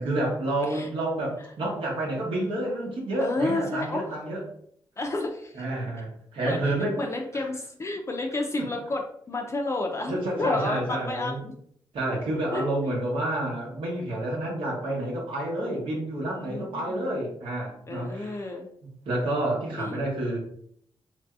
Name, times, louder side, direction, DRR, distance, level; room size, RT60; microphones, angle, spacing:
voice 1, 0.0-4.4 5.5-7.0 7.3-7.5 8.6-8.7 10.1-11.4 11.9-18.5 19.1-20.4, right 1 dB, 85° right, -4 dB, 0.9 m, -29 dB
voice 2, 3.2-4.1 5.0-5.6 6.4-11.5 12.1-12.2 12.5-12.6 16.3-17.1 17.9-18.7 19.8-20.0, left 2 dB, 30° left, 2 dB, 0.4 m, -31 dB
3.1 x 2.6 x 2.3 m, 0.66 s
cardioid pair, 80°, 9 cm